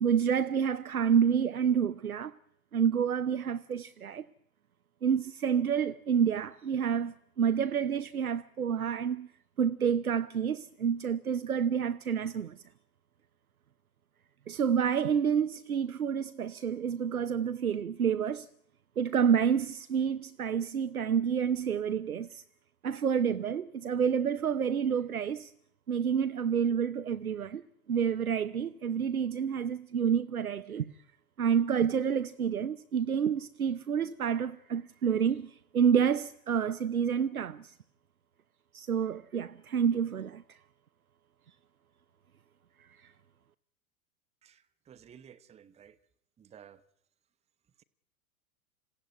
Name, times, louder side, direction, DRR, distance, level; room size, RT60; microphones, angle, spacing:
voice 1, 0.0-2.3 2.7-4.3 5.0-9.3 9.6-12.6 14.5-18.5 19.0-22.4 22.8-25.5 25.9-27.6 27.9-30.9 31.4-37.8 38.7-40.6 42.8-43.1, right 7 dB, 75° right, 0.9 m, -29 dB
voice 2, 44.4-46.0 46.4-46.8, right 8 dB, 15° right, 1.0 m, -54 dB
27.0 x 16.0 x 9.5 m
figure-of-eight pair, 95°, 43 cm